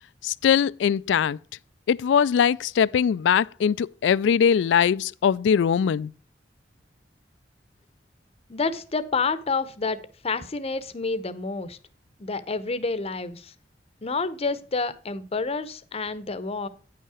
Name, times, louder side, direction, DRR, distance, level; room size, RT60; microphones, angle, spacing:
voice 1, 0.2-1.4 1.9-6.1, left 7 dB, 80° left, 0.3 m, -21 dB
voice 2, 8.5-11.8 12.2-13.5 14.0-16.7, left 4 dB, 35° left, 0.7 m, -29 dB
9.5 x 5.6 x 4.8 m
head